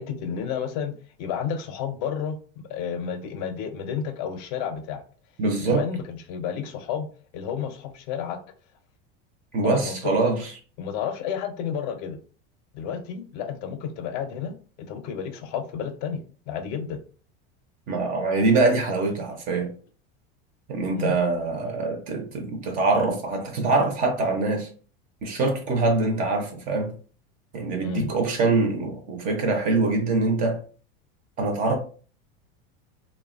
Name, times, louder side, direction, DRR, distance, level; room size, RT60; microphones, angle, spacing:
voice 1, 0.0-5.0 5.6-7.1 7.3-8.4 9.6-10.3 10.8-12.2 12.7-17.0 20.9-21.2 27.8-28.1, left 7 dB, 50° left, 0.5 m, -31 dB
voice 2, 5.4-5.8 9.5-10.5 17.9-19.7 20.7-24.7 25.2-27.0 27.5-30.6 31.4-31.8, right 3 dB, 30° right, 0.4 m, -24 dB
3.1 x 2.1 x 2.3 m
supercardioid pair, 160°, 30 cm